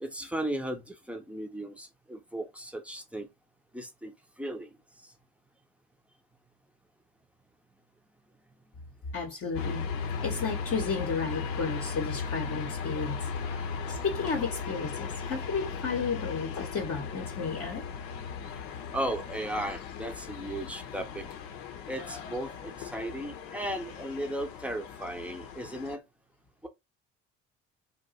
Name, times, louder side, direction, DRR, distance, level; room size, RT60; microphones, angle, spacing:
voice 1, 0.0-3.3 3.7-4.1 4.4-4.7 13.5-13.7 18.5-18.6 18.9-21.3 21.9-26.0, right 1 dB, 5° right, 0.7 m, -36 dB
voice 2, 9.1-9.9 10.2-13.3 13.9-17.9, left 5 dB, 35° left, 0.9 m, -33 dB
sound 1, 9.5-25.9, left 6 dB, 65° left, 0.8 m, -37 dB
2.7 x 2.2 x 3.9 m
figure-of-eight pair, 50°, 38 cm